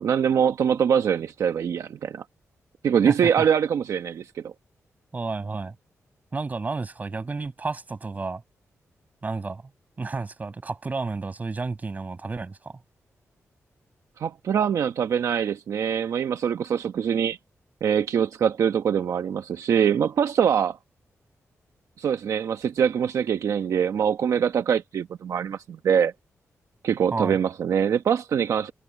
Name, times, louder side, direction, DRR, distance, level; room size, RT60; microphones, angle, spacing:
voice 1, 0.0-2.2 2.8-4.5 14.2-17.4 17.8-20.8 22.0-26.1 26.8-28.7, right 8 dB, 80° right, 1.0 m, -23 dB
voice 2, 3.1-3.4 5.1-5.7 6.3-8.4 9.2-9.6 10.0-12.7 27.1-27.4, right 3 dB, 30° right, 6.2 m, -31 dB
wide cardioid pair, 130°, 5 cm